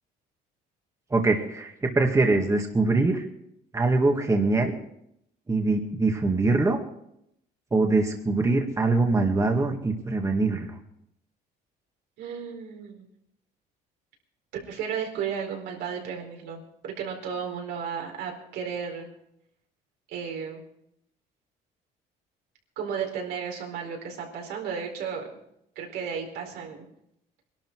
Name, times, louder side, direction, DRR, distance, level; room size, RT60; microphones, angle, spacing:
voice 1, 1.1-3.2 3.7-4.8 5.5-6.8 7.7-10.8, right 3 dB, 20° right, 2 dB, 2.0 m, -23 dB
voice 2, 12.2-13.1 14.7-19.1 20.1-20.6 22.8-25.3 25.8-26.9, right 7 dB, 80° right, 1 dB, 4.5 m, -34 dB
21.5 x 12.0 x 4.7 m, 0.77 s
cardioid pair, 110°, 17 cm